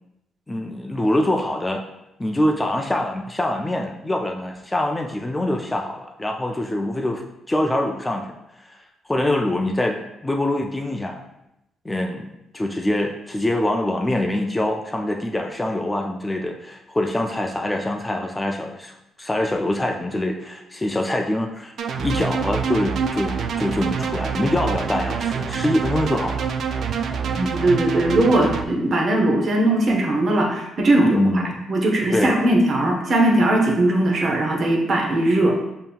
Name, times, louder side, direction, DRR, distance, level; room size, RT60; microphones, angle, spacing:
voice 1, 0.5-1.8 2.2-8.3 8.7-10.0 10.2-11.2 11.8-18.9 19.2-21.7 22.0-26.5 31.1-31.6 32.1-32.4, left 1 dB, 15° left, 2 dB, 0.4 m, -24 dB
sound 1, 21.8-28.6, right 6 dB, 65° right, 0.3 m, -26 dB
voice 2, 27.4-31.4 31.7-35.5, right 1 dB, 50° right, 2 dB, 0.8 m, -19 dB
5.2 x 2.9 x 2.3 m, 0.86 s
cardioid pair, 90°, 0 cm